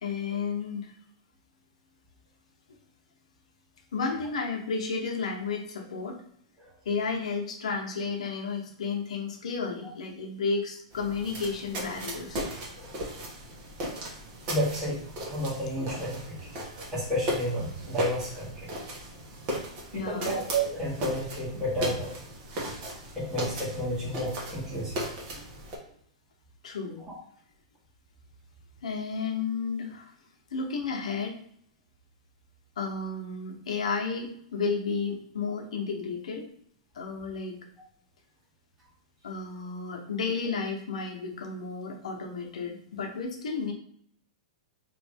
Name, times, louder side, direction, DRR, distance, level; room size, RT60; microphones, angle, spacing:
voice 1, 0.0-0.9 3.9-6.2 6.8-12.4 19.9-20.4 26.6-27.0 28.8-30.1 30.5-31.4 32.8-36.5 36.9-37.6 39.2-43.7, left 4 dB, 90° left, 2 dB, 0.8 m, -32 dB
sound 1, 10.9-25.8, right 1 dB, 40° right, 1.0 m, -37 dB
voice 2, 14.4-15.0 15.3-16.5 16.9-18.7 19.9-22.2 23.1-25.1 27.0-27.1, equal, 15° right, -10 dB, 1.4 m, -31 dB
3.0 x 2.6 x 3.4 m, 0.66 s
hypercardioid pair, 145°, 3 cm